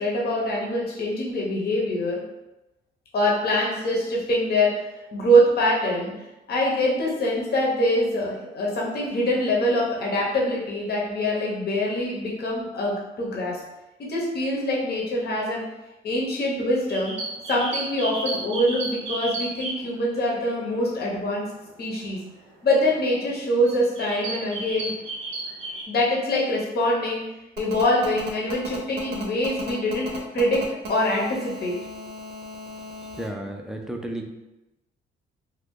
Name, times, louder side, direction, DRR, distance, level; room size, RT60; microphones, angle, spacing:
voice 1, 0.0-2.2 3.1-6.1 6.5-13.6 14.0-15.6 16.0-17.1 17.5-21.5 21.8-22.2 22.6-24.9 25.9-27.2 27.6-30.6 30.9-31.8, equal, 55° left, -3 dB, 0.9 m, -24 dB
sound 1, 16.8-20.8 21.3-21.5 22.5-22.6 23.1-23.4 23.6-25.8, right 2 dB, 85° right, 0.9 m, -33 dB
Telephone, 27.6-33.3, equal, 55° right, 0.7 m, -37 dB
voice 2, 33.0-34.3, right 1 dB, ahead, 2 dB, 0.4 m, -33 dB
2.6 x 2.4 x 3.6 m, 0.99 s
cardioid pair, 90°, 20 cm